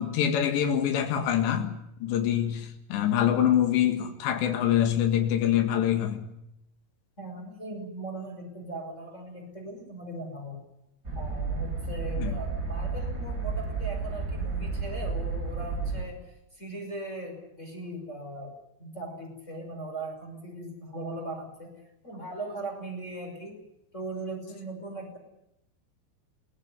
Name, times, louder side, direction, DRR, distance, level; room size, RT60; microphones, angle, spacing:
voice 1, 0.0-6.2 12.2-12.3, left 10 dB, 80° left, 4.1 m, -25 dB
voice 2, 7.2-10.6 11.1-16.2 16.5-18.5 18.8-21.8 22.0-23.6 23.9-25.2, right 2 dB, 15° left, 5.7 m, -39 dB
sound 1, 11.0-16.0, right 4 dB, 20° right, 4.3 m, -32 dB
22.0 x 17.5 x 9.6 m
omnidirectional pair, 5.0 m